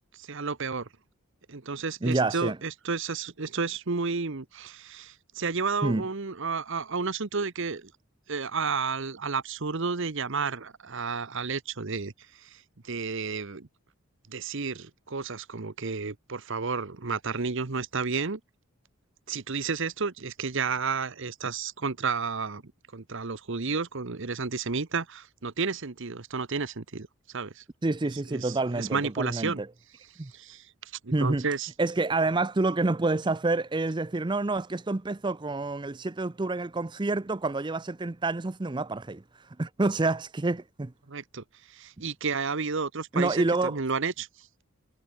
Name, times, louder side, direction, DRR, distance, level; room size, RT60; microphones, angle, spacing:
voice 1, 0.1-0.9 1.5-7.9 8.3-13.7 14.3-18.4 19.3-27.1 27.3-27.6 28.3-29.6 30.3-31.7 41.1-44.5, right 5 dB, 60° right, 1.0 m, -32 dB
voice 2, 2.0-2.6 5.8-6.1 27.8-29.7 30.2-30.3 31.1-31.4 31.8-39.2 39.6-40.9 43.1-43.8, right 2 dB, 20° right, 0.5 m, -28 dB
head